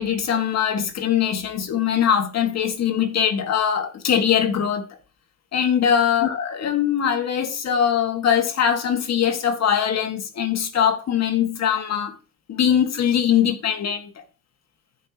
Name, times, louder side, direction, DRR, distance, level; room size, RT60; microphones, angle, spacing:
voice 1, 0.0-4.8 5.5-12.2 12.5-14.2, left 8 dB, 60° left, 1.9 m, -22 dB
15.0 x 5.6 x 3.0 m
cardioid pair, 90°, 30 cm